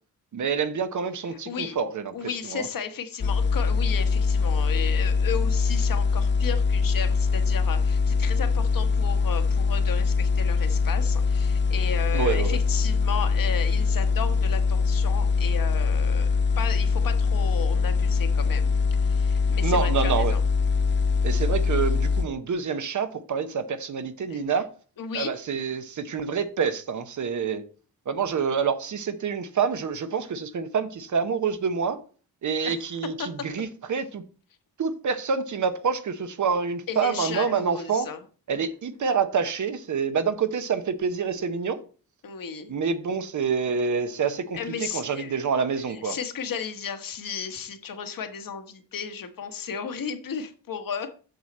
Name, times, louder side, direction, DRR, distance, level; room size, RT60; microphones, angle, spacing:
voice 1, 0.3-2.1 2.5-2.7 12.1-12.6 19.6-20.3 21.2-24.7 25.1-27.6 28.1-32.0 32.4-34.2 34.8-38.1 38.5-41.8 42.7-46.2, right 6 dB, 55° right, 0.8 m, -27 dB
voice 2, 1.3-1.8 2.1-20.4 24.3-24.4 25.0-25.3 32.6-32.7 33.2-33.3 36.9-38.2 42.2-42.7 44.5-45.4 45.9-51.1, left 6 dB, 65° left, 1.2 m, -34 dB
sound 1, 3.2-22.3, left 4 dB, 30° left, 0.5 m, -23 dB
7.8 x 6.5 x 4.2 m
wide cardioid pair, 130°, 36 cm